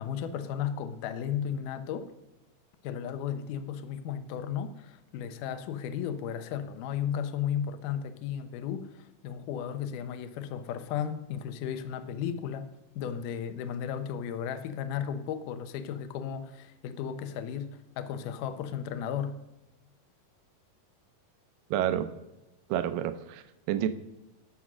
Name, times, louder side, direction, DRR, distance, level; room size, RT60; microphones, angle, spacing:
voice 1, 0.0-2.1 2.8-19.4, left 8 dB, 75° left, 11 dB, 2.1 m, -34 dB
voice 2, 21.7-22.1 22.7-23.9, right 11 dB, 80° right, 10 dB, 2.1 m, -29 dB
15.5 x 6.3 x 6.1 m, 0.98 s
omnidirectional pair, 4.4 m